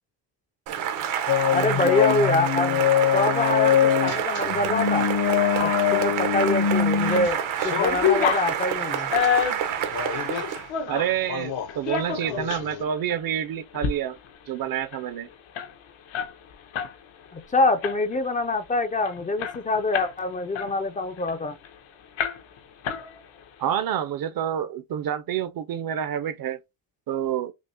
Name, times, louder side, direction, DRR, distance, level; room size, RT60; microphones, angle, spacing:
Cheering / Applause, 0.7-10.7, right 8 dB, 90° right, 1.0 m, -28 dB
sound 1, 1.3-7.3 7.6-8.0 9.2-9.3 9.9-10.4 11.2-11.7 12.1-12.8, left 9 dB, 55° left, 0.8 m, -24 dB
voice 1, 1.5-2.9 3.1-5.1 5.6-9.1 17.3-21.6, left 2 dB, 20° left, 0.3 m, -25 dB
sound 2, 6.7-7.3 7.6-11.2 11.7-12.6 13.1-13.2 13.6-13.9 14.2-14.3 14.6-16.9 17.3-17.5 17.8-18.3 18.7-18.8 19.1-20.2 20.5-21.7 22.2-22.6 22.8-23.5, left 8 dB, 80° left, 1.0 m, -28 dB
voice 2, 10.9-14.2 14.5-15.3 23.6-26.6 27.1-27.5, right 9 dB, 50° right, 0.5 m, -28 dB
6.1 x 2.0 x 2.8 m
cardioid pair, 145°, 46 cm